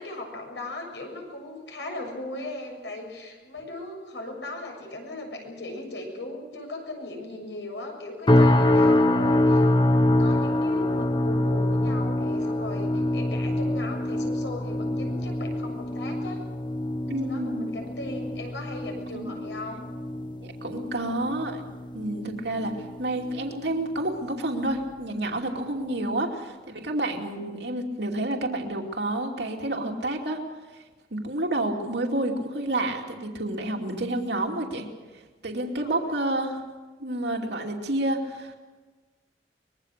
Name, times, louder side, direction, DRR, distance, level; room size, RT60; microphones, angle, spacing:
voice 1, 0.0-9.6 9.9-16.4 17.2-19.9 22.3-22.9 35.8-36.1, left 2 dB, 85° left, 2 dB, 7.1 m, -38 dB
sound 1, 8.3-23.5 23.8-24.2 24.7-24.9, left 1 dB, 25° left, 1.0 m, -25 dB
voice 2, 17.1-17.7 19.1-19.3 20.4-21.6 21.9-22.7 23.0-30.4 30.7-30.8 31.1-34.9 35.1-36.6 37.0-38.5, right 1 dB, 75° right, 1 dB, 2.7 m, -29 dB
24.5 x 21.5 x 6.7 m, 1.3 s
head